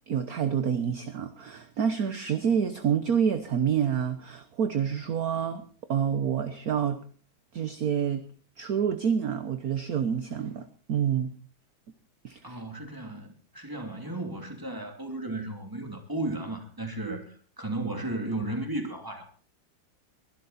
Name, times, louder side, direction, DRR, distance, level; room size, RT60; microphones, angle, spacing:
voice 1, 0.1-5.6 5.9-7.0 7.5-8.3 8.6-11.3 12.2-12.6 17.1-17.2, right 8 dB, 50° right, 1.3 m, -28 dB
voice 2, 12.4-19.2, right 2 dB, 10° right, 2.8 m, -34 dB
22.5 x 12.0 x 4.3 m
omnidirectional pair, 2.2 m